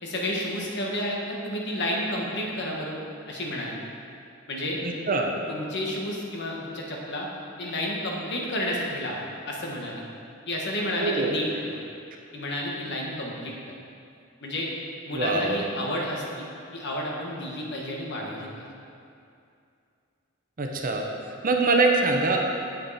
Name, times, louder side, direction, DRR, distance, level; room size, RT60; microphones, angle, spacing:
voice 1, 0.0-3.0 3.3-3.8 4.5-4.8 5.5-7.3 7.6-10.0 10.5-11.8 12.3-13.5 14.4-14.7 15.1-18.6, left 1 dB, 55° left, -2 dB, 1.4 m, -31 dB
voice 2, 4.8-5.3 11.0-11.3 15.1-15.6 20.6-22.5, right 3 dB, 40° right, 1 dB, 0.8 m, -24 dB
8.8 x 7.5 x 4.1 m, 2.5 s
head